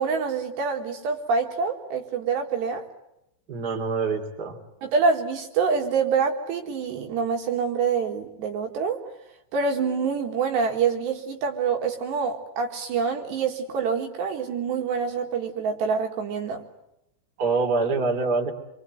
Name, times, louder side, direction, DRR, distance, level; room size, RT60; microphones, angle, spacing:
voice 1, 0.0-2.9 4.8-9.0 9.5-16.6, right 5 dB, 65° right, 2 dB, 3.6 m, -26 dB
voice 2, 3.5-4.6 17.4-18.5, right 4 dB, 25° right, 3 dB, 2.4 m, -25 dB
28.5 x 24.5 x 7.9 m, 0.86 s
omnidirectional pair, 6.0 m